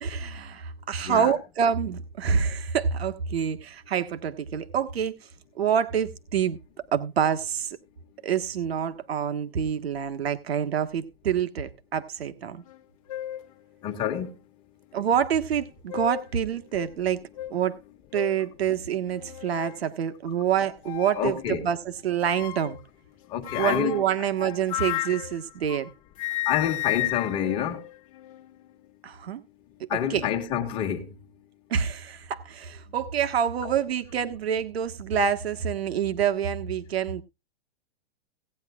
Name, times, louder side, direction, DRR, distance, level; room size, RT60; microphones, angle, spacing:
voice 1, 0.0-5.2 5.5-6.6 6.9-7.8 8.2-12.6 14.9-17.2 17.5-17.7 18.1-21.8 22.0-22.8 23.6-25.9 29.0-29.4 30.1-30.2 31.7-37.2, right 8 dB, 70° right, 1.4 m, -27 dB
sound 1, 12.7-12.8 13.1-13.5 14.2-14.3 15.6-16.3 16.8-16.9 17.4-17.5 18.1-18.4 19.1-19.8 20.8-21.3 22.2-22.8 23.4-25.9 26.2-28.5, left 16 dB, 35° left, 1.0 m, -33 dB
voice 2, 13.8-14.3 21.1-21.7 23.3-24.3 26.5-27.8 29.9-31.1 33.6-33.7, left 9 dB, 15° left, 1.4 m, -28 dB
18.0 x 9.7 x 2.4 m
hypercardioid pair, 175°, 31 cm